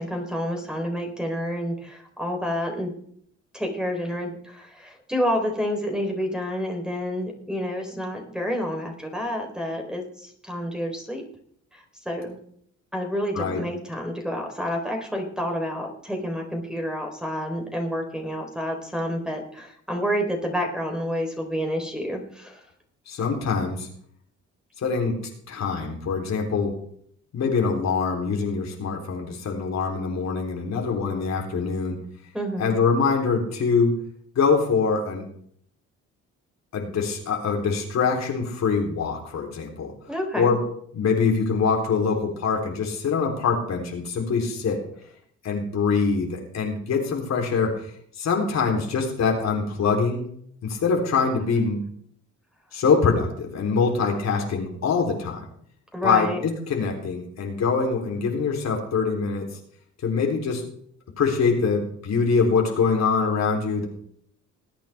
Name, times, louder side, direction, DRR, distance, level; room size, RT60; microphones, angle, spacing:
voice 1, 0.0-2.9 3.5-11.2 11.7-12.4 12.9-22.6 32.3-32.7 40.1-40.5 55.9-56.4, equal, ahead, 2 dB, 3.9 m, -29 dB
voice 2, 23.1-23.9 24.8-26.8 27.3-32.0 32.6-34.0 34.4-35.3 36.7-39.9 40.4-40.6 40.9-44.8 45.4-47.8 48.2-50.3 50.6-51.8 52.7-55.4 56.0-59.6 60.0-60.7 61.2-63.9, left 5 dB, 60° left, 1 dB, 3.6 m, -24 dB
20.5 x 8.9 x 3.5 m, 0.63 s
cardioid pair, 90°, 30 cm